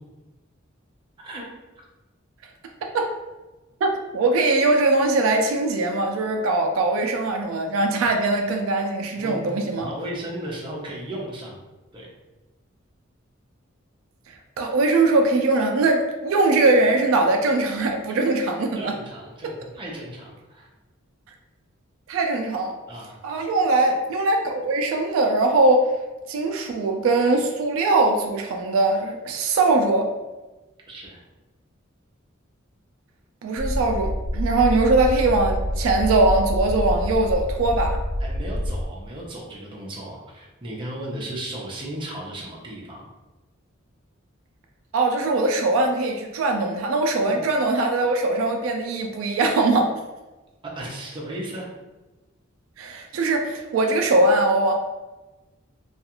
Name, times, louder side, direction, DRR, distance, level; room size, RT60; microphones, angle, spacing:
voice 1, 3.8-9.9 14.3-18.9 22.1-22.7 23.2-25.9 26.3-30.1 33.4-38.0 44.9-49.9 52.8-54.7, right 2 dB, 80° right, 3 dB, 0.3 m, -21 dB
voice 2, 9.2-11.6 11.9-12.1 18.8-20.7 22.9-23.2 30.9-31.2 38.2-43.1 47.2-47.4 50.6-51.7, right 1 dB, 25° right, -3 dB, 0.5 m, -35 dB
sound 1, 33.6-38.9, equal, 55° left, 0.4 m, -27 dB
2.3 x 2.3 x 2.8 m, 1.1 s
head